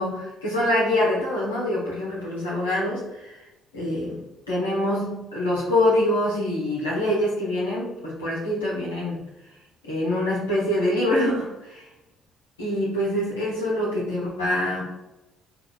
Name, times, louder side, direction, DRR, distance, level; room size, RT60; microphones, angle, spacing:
voice 1, 0.0-3.4 3.7-9.2 9.8-11.9 12.6-15.0, left 1 dB, 90° left, -7 dB, 0.9 m, -25 dB
5.6 x 2.3 x 2.3 m, 0.98 s
hypercardioid pair, 50°, 0 cm